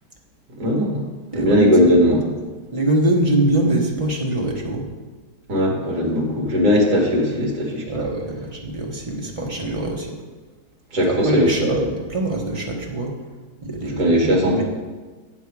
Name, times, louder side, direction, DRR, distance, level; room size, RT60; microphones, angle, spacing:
voice 1, 0.6-1.0 1.3-2.2 5.5-7.8 10.9-11.8 13.8-14.6, equal, 40° right, -2 dB, 2.4 m, -18 dB
voice 2, 1.3-1.7 2.7-4.8 7.9-10.1 11.1-13.1 13.6-14.6, right 1 dB, 20° right, -2 dB, 1.0 m, -23 dB
8.3 x 7.8 x 4.8 m, 1.3 s
omnidirectional pair, 2.3 m